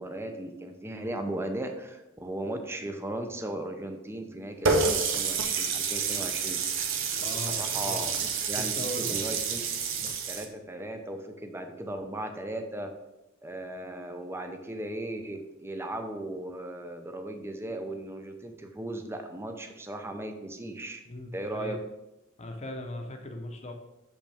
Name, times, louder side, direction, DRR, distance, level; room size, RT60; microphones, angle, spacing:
voice 1, 0.0-6.6 7.3-9.6 10.0-12.9 13.4-21.0 21.3-21.8, right 1 dB, 15° right, 5 dB, 0.6 m, -37 dB
Water tap faucet, 4.7-10.4, right 5 dB, 75° right, 0.8 m, -29 dB
voice 2, 7.2-8.1 8.5-9.2 21.1-21.8 22.4-23.7, left 1 dB, 35° left, 4 dB, 0.8 m, -38 dB
6.7 x 5.2 x 3.5 m, 0.96 s
head